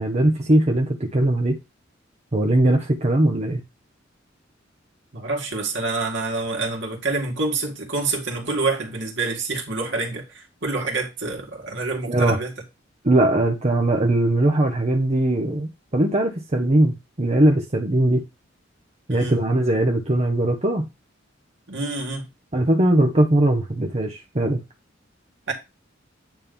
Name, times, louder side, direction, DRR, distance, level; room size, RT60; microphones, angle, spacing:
voice 1, 0.0-1.6 2.3-3.6 12.1-12.4 13.0-18.2 19.1-20.9 22.5-24.6, right 1 dB, 35° right, 0.9 m, -20 dB
voice 2, 5.1-12.5 19.1-19.4 21.7-22.3 25.5-25.6, right 3 dB, 65° right, 2.1 m, -27 dB
9.1 x 3.1 x 5.3 m
head